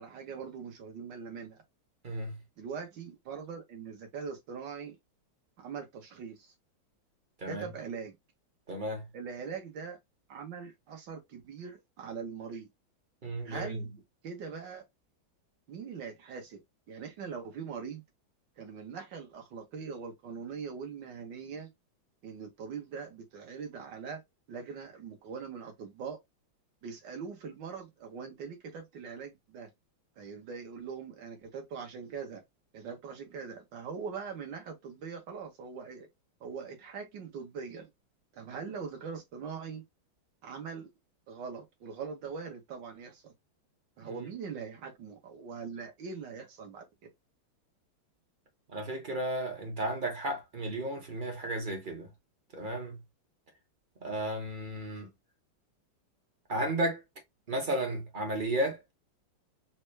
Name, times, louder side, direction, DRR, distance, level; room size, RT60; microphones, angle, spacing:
voice 1, 0.0-1.6 2.6-5.0 5.6-6.5 7.5-8.2 9.1-10.0 10.3-12.7 13.5-13.9 14.2-14.8 15.7-16.6 16.9-18.0 18.6-21.7 22.2-24.2 24.5-26.2 26.8-29.7 30.2-32.4 32.7-36.1 36.4-37.9 38.3-39.8 40.4-40.9 41.3-43.3 44.0-46.9, right 6 dB, 65° right, 1.7 m, -42 dB
voice 2, 2.0-2.4 7.4-7.6 8.7-9.0 13.2-13.8 44.0-44.2 48.7-52.1 52.5-53.0 54.0-55.1 56.5-57.0 57.5-58.8, right 1 dB, 40° right, 0.7 m, -33 dB
4.2 x 2.3 x 3.1 m
omnidirectional pair, 2.2 m